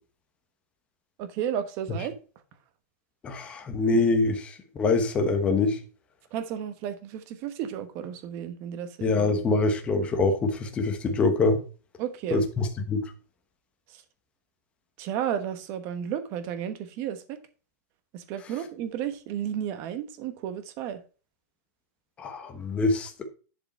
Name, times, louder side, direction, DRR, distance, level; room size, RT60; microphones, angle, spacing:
voice 1, 1.2-2.1 6.3-9.1 12.0-12.4 15.0-17.4 18.1-21.0, right 9 dB, 25° right, 1.1 m, -33 dB
voice 2, 3.2-4.5 4.8-5.8 9.0-11.6 12.3-13.1 22.2-23.2, left 3 dB, 10° left, 1.1 m, -24 dB
10.5 x 4.9 x 4.2 m
supercardioid pair, 170°, 9 cm